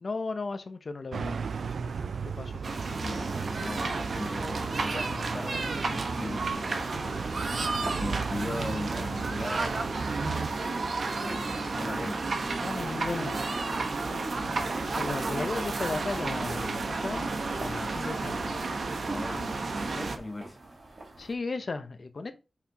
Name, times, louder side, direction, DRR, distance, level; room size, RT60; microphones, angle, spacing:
voice 1, 0.0-2.6 7.0-7.1 10.2-10.6 12.6-13.4 14.9-17.3 17.6-18.4 21.2-22.3, left 3 dB, 55° left, 0.8 m, -36 dB
sound 1, 1.1-10.5, right 5 dB, 80° right, 0.3 m, -36 dB
sound 2, 2.6-20.2, right 3 dB, 65° right, 1.1 m, -32 dB
sound 3, 2.7-21.3, right 2 dB, 50° right, 3.6 m, -47 dB
voice 2, 3.0-3.3 3.5-6.7 7.8-9.9 11.2-12.3 14.4-14.7 18.4-18.8 19.0-20.6, left 2 dB, 30° left, 1.4 m, -39 dB
5.8 x 4.5 x 4.6 m
wide cardioid pair, 80°, 0 cm